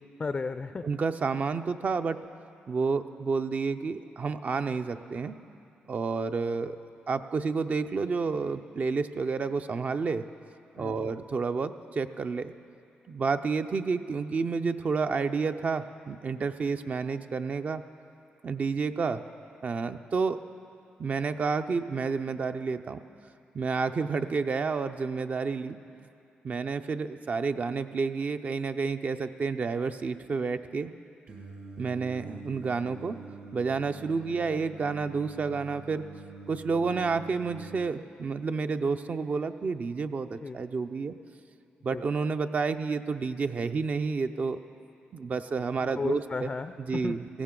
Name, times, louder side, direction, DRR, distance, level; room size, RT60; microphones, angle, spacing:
voice 1, 0.2-0.9 10.8-11.2 40.4-40.6 41.9-42.0 45.9-47.2, left 4 dB, 35° left, 10 dB, 0.4 m, -34 dB
voice 2, 0.8-2.2 2.7-5.4 5.9-6.8 7.1-10.2 10.7-12.5 13.1-17.8 18.4-19.2 19.6-20.4 21.0-23.0 23.5-25.8 26.4-30.9 31.8-33.2 33.5-36.1 36.5-41.1 41.8-44.6 45.1-46.5 46.9-47.4, right 4 dB, 45° right, 9 dB, 0.5 m, -30 dB
Singing, 31.3-37.8, right 3 dB, 65° right, 2.0 m, -45 dB
17.5 x 15.0 x 3.8 m, 2.5 s
cardioid pair, 80°, 4 cm